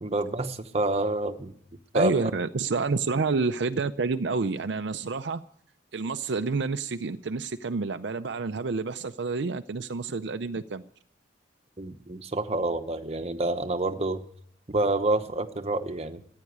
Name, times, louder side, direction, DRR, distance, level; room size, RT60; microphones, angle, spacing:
voice 1, 0.0-1.5 1.9-2.3 11.8-14.2 14.7-16.2, right 2 dB, 35° right, 8 dB, 1.0 m, -28 dB
voice 2, 1.9-5.4 5.9-10.8, right 4 dB, 65° right, 9 dB, 0.5 m, -29 dB
14.5 x 9.7 x 9.4 m, 0.71 s
head